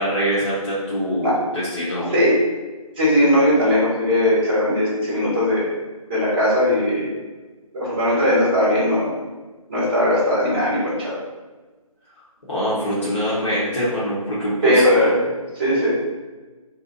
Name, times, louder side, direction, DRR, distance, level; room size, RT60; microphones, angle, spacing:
voice 1, 0.0-2.1 12.5-14.8, equal, 50° left, -9 dB, 1.1 m, -24 dB
voice 2, 3.0-5.7 6.1-7.1 7.7-9.1 9.7-11.2 14.6-15.2 15.5-16.0, left 1 dB, 15° right, -8 dB, 0.7 m, -19 dB
2.7 x 2.3 x 3.9 m, 1.3 s
figure-of-eight pair, 165°, 19 cm